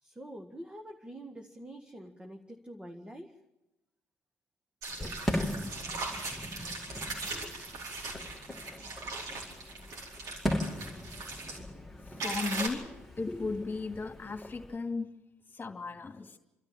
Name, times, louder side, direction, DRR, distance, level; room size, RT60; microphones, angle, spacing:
voice 1, 0.0-3.3, right 1 dB, 15° right, 3 dB, 1.8 m, -46 dB
sound 1, 4.8-11.6 12.2-12.7, right 3 dB, 60° right, 4.7 m, -39 dB
Fireworks, 4.9-14.8, equal, ahead, 2.9 m, -39 dB
voice 2, 12.2-15.1 15.5-16.4, left 3 dB, 25° left, 5 dB, 2.5 m, -36 dB
30.0 x 13.0 x 7.5 m, 0.96 s
hypercardioid pair, 50°, 7 cm